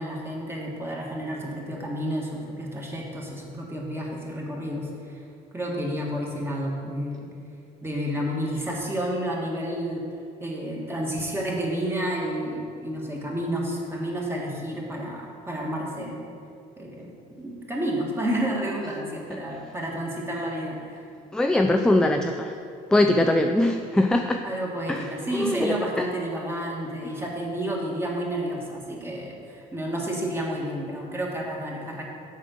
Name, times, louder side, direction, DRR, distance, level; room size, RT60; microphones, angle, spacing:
voice 1, 0.0-5.2 5.5-7.2 7.8-10.0 10.4-16.2 16.8-21.0 24.4-32.0, right 1 dB, 15° right, -2 dB, 1.7 m, -30 dB
voice 2, 21.3-22.5 22.9-24.4 25.3-26.0, left 1 dB, 5° left, 5 dB, 0.3 m, -21 dB
7.5 x 5.1 x 6.5 m, 2.4 s
cardioid pair, 110°, 17 cm